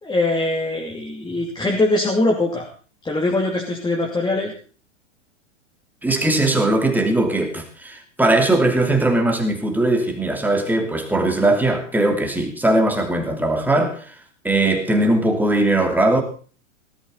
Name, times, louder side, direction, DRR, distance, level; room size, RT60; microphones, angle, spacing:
voice 1, 0.0-2.7 3.0-4.5, left 2 dB, 10° left, -1 dB, 2.8 m, -22 dB
voice 2, 6.0-14.2 14.4-16.2, right 2 dB, 5° right, 4 dB, 2.9 m, -19 dB
18.5 x 12.5 x 4.1 m, 0.41 s
hypercardioid pair, 105°, 38 cm